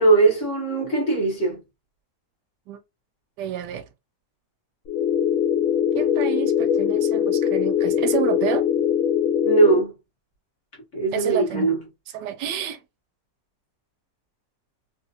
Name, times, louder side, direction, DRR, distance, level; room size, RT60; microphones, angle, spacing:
voice 1, 0.0-1.6 9.4-9.9 10.9-11.8, right 3 dB, 50° left, 1.3 m, -20 dB
voice 2, 3.4-3.9 5.9-8.7 11.1-11.7 12.1-12.8, right 9 dB, 85° right, 1.2 m, -29 dB
sound 1, 4.9-9.8, left 9 dB, 70° left, 0.8 m, -22 dB
3.2 x 2.4 x 2.6 m
omnidirectional pair, 1.8 m